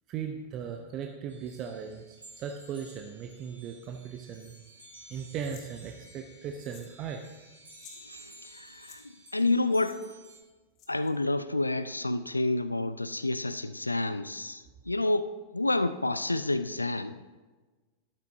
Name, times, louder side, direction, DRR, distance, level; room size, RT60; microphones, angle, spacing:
voice 1, 0.1-4.5 5.1-7.2, right 7 dB, 35° right, 4 dB, 0.7 m, -38 dB
sound 1, 1.3-10.4, right 1 dB, 75° right, 2.6 m, -53 dB
sound 2, 5.4-5.7 6.6-7.0 7.2-7.3 7.7-8.0 8.7-9.0 9.8-10.0 10.8-11.1, left 6 dB, 35° left, 2.2 m, -53 dB
voice 2, 8.0-9.0 9.3-10.1 10.9-17.2, left 2 dB, 85° left, 13 dB, 0.3 m, -29 dB
13.0 x 12.0 x 2.7 m, 1.3 s
figure-of-eight pair, 90°, 0 cm